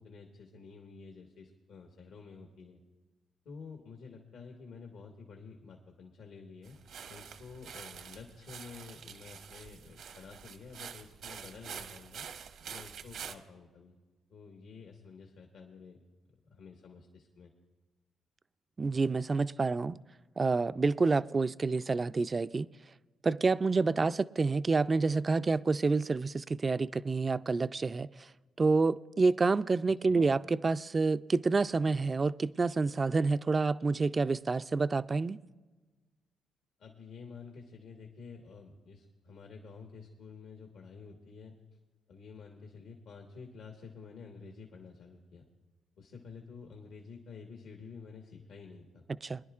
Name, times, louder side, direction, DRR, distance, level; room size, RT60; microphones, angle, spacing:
voice 1, 0.0-2.8 3.4-13.9 14.3-16.0 16.3-17.5 29.8-30.2 36.8-41.6 42.1-45.4 46.0-49.0, left 5 dB, 75° left, 1.4 m, -50 dB
sound 1, 6.6-13.3, right 7 dB, 75° right, 0.9 m, -46 dB
voice 2, 18.8-20.0 20.4-22.7 23.2-28.1 28.6-35.4 49.2-49.4, right 4 dB, 30° right, 0.3 m, -28 dB
24.0 x 11.0 x 2.4 m
cardioid pair, 90°, 0 cm